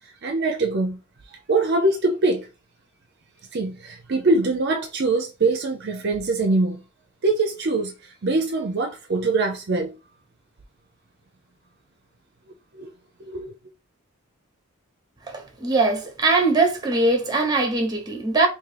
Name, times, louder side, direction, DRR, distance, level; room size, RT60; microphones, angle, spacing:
voice 1, 0.2-1.0 1.3-2.5 3.5-6.8 7.2-9.9 12.7-12.9 13.2-13.5, right 3 dB, 50° right, 0.5 m, -23 dB
voice 2, 15.3-18.5, right 3 dB, 20° right, 0.9 m, -21 dB
3.7 x 2.7 x 3.3 m
head